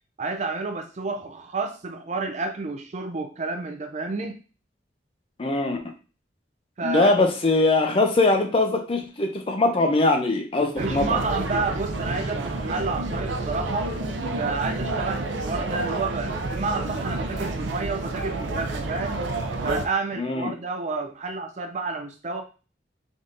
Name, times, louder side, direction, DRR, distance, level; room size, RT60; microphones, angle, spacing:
voice 1, 0.2-4.4 6.8-7.1 10.8-13.9 14.4-19.2 19.6-22.4, right 3 dB, 40° right, 6 dB, 0.4 m, -30 dB
voice 2, 5.4-5.8 6.8-11.2 20.2-20.5, left 2 dB, 30° left, 5 dB, 0.5 m, -22 dB
sound 1, 10.8-19.8, right 2 dB, 85° right, 0.6 m, -29 dB
3.5 x 2.7 x 3.7 m, 0.35 s
head